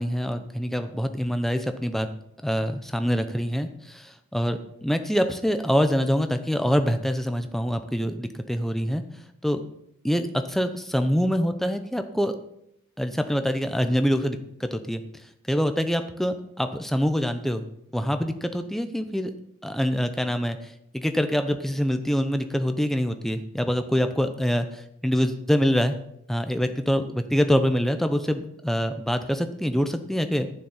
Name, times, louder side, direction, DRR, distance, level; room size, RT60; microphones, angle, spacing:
voice 1, 0.0-2.1 2.4-9.0 9.4-9.6 10.0-12.4 13.0-15.0 15.5-17.6 17.9-19.3 19.6-26.0 26.3-30.5, equal, ahead, 8 dB, 0.7 m, -25 dB
11.0 x 9.7 x 5.7 m, 0.77 s
head